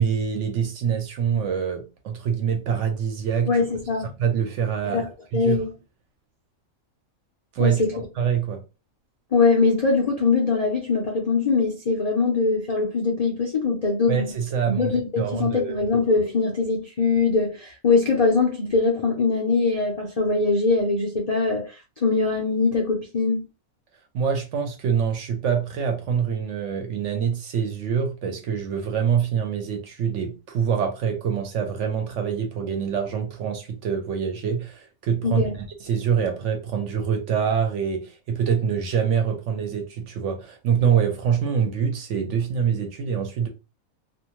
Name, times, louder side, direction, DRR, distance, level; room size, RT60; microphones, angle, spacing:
voice 1, 0.0-3.6 4.2-5.6 7.5-7.8 8.2-8.6 14.1-15.7 24.1-43.5, right 7 dB, 65° right, 0.8 m, -25 dB
voice 2, 3.5-4.1 4.8-5.0 5.3-5.7 7.6-7.9 9.3-14.3 14.7-23.4 35.2-35.5, left 4 dB, 65° left, 0.3 m, -22 dB
2.5 x 2.2 x 2.9 m
omnidirectional pair, 1.5 m